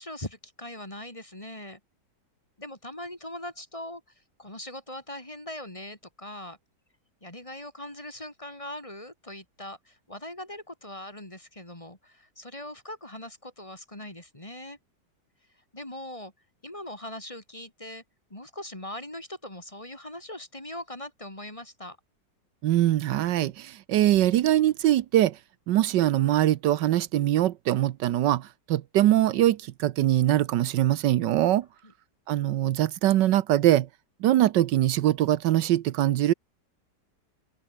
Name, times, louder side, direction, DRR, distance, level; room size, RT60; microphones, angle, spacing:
voice 1, 0.0-1.8 2.6-4.0 4.4-6.6 7.2-14.8 15.7-16.3 16.6-18.0 18.3-22.0, left 1 dB, 15° left, 3.5 m, -41 dB
voice 2, 22.6-25.4 25.7-31.7 32.3-33.9 34.2-36.3, right 13 dB, 80° right, 1.4 m, -22 dB
omnidirectional pair, 1.9 m